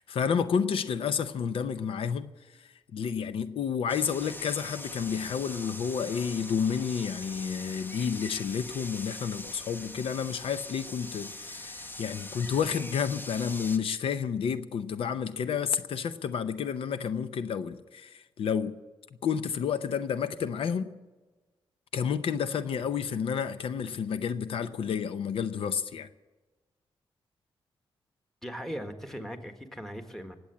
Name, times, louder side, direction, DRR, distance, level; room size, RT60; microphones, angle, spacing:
voice 1, 0.0-2.3 2.6-18.8 19.2-21.0 21.9-26.1, left 7 dB, 85° left, 0.6 m, -30 dB
sound 1, 3.9-13.8, left 1 dB, 20° left, 1.0 m, -42 dB
voice 2, 28.4-30.3, equal, 5° left, 1.6 m, -39 dB
19.0 x 7.9 x 8.4 m
cardioid pair, 85°, 9 cm